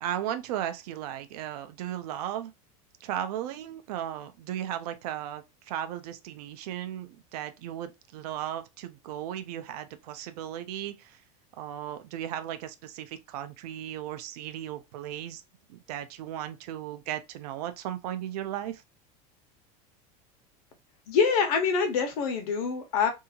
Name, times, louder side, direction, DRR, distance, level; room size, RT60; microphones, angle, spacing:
voice 1, 0.0-2.5 3.0-11.2 11.6-15.4 15.7-18.8, right 11 dB, 85° right, 0.5 m, -36 dB
voice 2, 21.1-23.1, left 5 dB, 75° left, 0.9 m, -25 dB
2.7 x 2.4 x 2.7 m
supercardioid pair, 165°, 19 cm